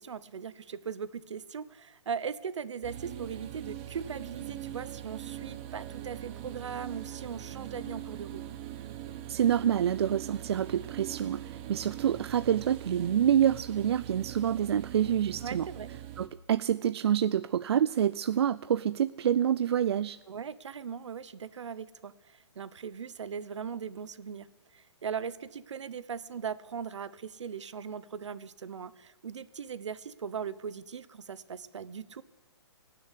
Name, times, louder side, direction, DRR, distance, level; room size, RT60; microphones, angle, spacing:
voice 1, 0.0-8.4 15.4-15.9 20.3-24.5 24.7-32.2, right 7 dB, 80° right, 16 dB, 0.9 m, -39 dB
sound 1, 2.8-16.3, right 12 dB, 25° right, 0.9 m, -42 dB
voice 2, 9.3-15.7 16.2-20.2, right 9 dB, 65° right, 14 dB, 0.4 m, -27 dB
18.0 x 7.0 x 9.9 m, 1.1 s
hypercardioid pair, 165°, 15 cm